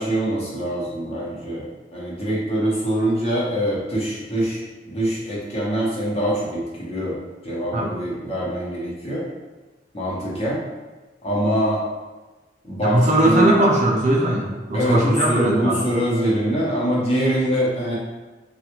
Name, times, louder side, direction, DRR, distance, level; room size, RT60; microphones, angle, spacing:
voice 1, 0.0-1.7 1.9-7.1 7.4-9.2 9.9-10.6 11.2-11.8 12.6-13.5 14.7-18.0, right 1 dB, 35° left, -6 dB, 0.8 m, -23 dB
voice 2, 12.8-15.8, right 1 dB, 40° right, -3 dB, 0.5 m, -20 dB
3.3 x 2.4 x 2.9 m, 1.2 s
head